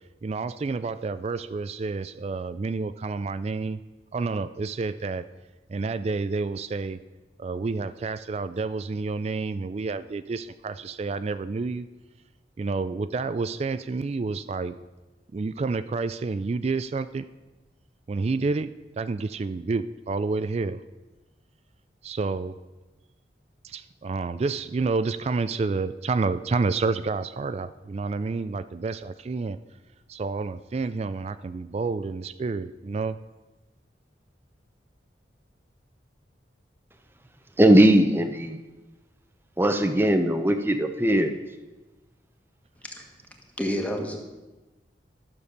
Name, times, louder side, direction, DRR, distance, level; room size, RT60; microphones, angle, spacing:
voice 1, 0.2-3.8 4.1-5.2 5.7-7.0 7.4-11.9 12.6-14.8 15.3-17.3 18.1-20.8 22.0-22.6 23.6-29.6 30.1-33.2, right 4 dB, 35° right, 13 dB, 0.3 m, -29 dB
voice 2, 37.6-38.6 39.6-41.3, right 1 dB, 10° right, 7 dB, 0.7 m, -19 dB
voice 3, 43.6-44.2, equal, 10° left, 2 dB, 1.4 m, -29 dB
12.5 x 7.0 x 6.5 m, 1.1 s
head